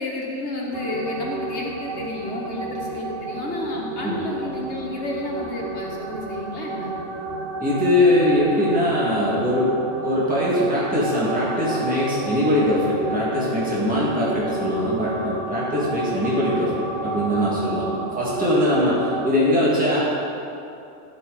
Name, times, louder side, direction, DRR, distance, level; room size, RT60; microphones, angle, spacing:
voice 1, 0.0-7.0 17.8-18.1, left 1 dB, 80° left, -3 dB, 1.7 m, -31 dB
sound 1, 0.7-19.3, right 3 dB, 55° right, 1.0 m, -32 dB
voice 2, 7.6-9.7 10.0-17.9 18.2-20.0, left 1 dB, 5° right, -8 dB, 1.8 m, -21 dB
15.0 x 5.6 x 3.9 m, 2.7 s
omnidirectional pair, 1.2 m